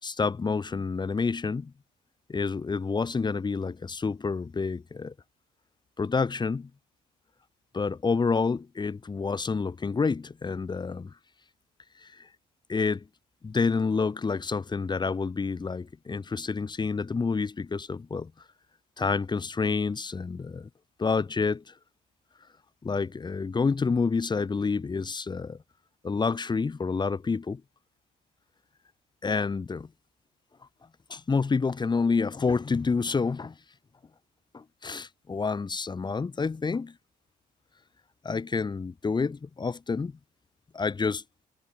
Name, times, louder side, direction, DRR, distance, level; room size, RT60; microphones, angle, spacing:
voice 1, 0.0-1.7 2.3-5.1 6.0-6.7 7.7-11.1 12.0-12.3 12.7-13.0 13.4-18.3 19.0-20.7 21.0-21.7 22.8-25.6 26.0-27.6 29.2-29.9 31.1-33.5 34.5-36.9 38.2-40.1 40.7-41.2, left 4 dB, 25° left, 6.5 m, -28 dB
cardioid pair, 110°, 17 cm